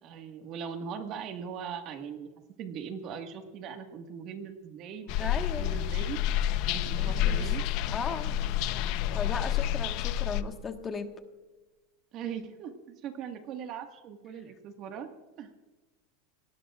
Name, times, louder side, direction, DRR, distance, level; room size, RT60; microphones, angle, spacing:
voice 1, 0.0-2.3 2.6-6.2 6.7-7.6 8.7-9.2 9.6-9.7 12.1-15.1 15.4-15.5, right 7 dB, 45° right, 5 dB, 1.7 m, -40 dB
sound 1, 5.1-10.4, left 11 dB, 55° left, 0.7 m, -29 dB
voice 2, 5.2-5.7 6.9-7.5 7.9-8.4 9.1-11.1, left 6 dB, 25° left, 5 dB, 1.5 m, -36 dB
27.0 x 19.0 x 2.5 m, 1.2 s
supercardioid pair, 130°, 0 cm